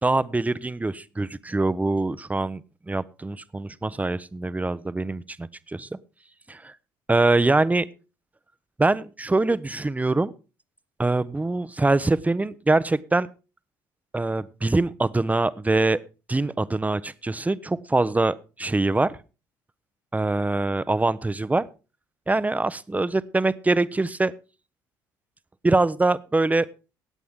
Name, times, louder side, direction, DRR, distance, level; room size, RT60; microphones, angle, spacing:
voice 1, 0.0-6.0 6.5-6.7 7.1-7.9 8.8-10.3 11.0-13.3 14.1-16.0 16.3-19.1 20.1-21.6 22.3-24.3 25.6-26.7, right 2 dB, 15° right, 16 dB, 0.8 m, -24 dB
17.5 x 8.3 x 3.6 m, 0.32 s
hypercardioid pair, 55°, 11 cm